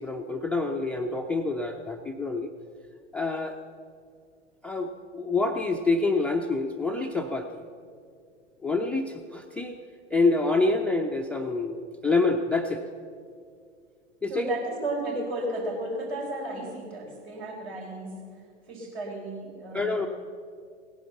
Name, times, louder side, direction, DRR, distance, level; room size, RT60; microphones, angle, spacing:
voice 1, 0.0-2.5 3.1-3.6 4.6-7.6 8.6-9.8 10.1-12.8 14.2-14.5 19.7-20.1, left 3 dB, 5° left, 5 dB, 0.4 m, -27 dB
voice 2, 14.3-18.1 18.7-20.1, right 1 dB, 65° right, -1 dB, 4.5 m, -33 dB
17.5 x 10.5 x 6.9 m, 2.2 s
figure-of-eight pair, 90°, 36 cm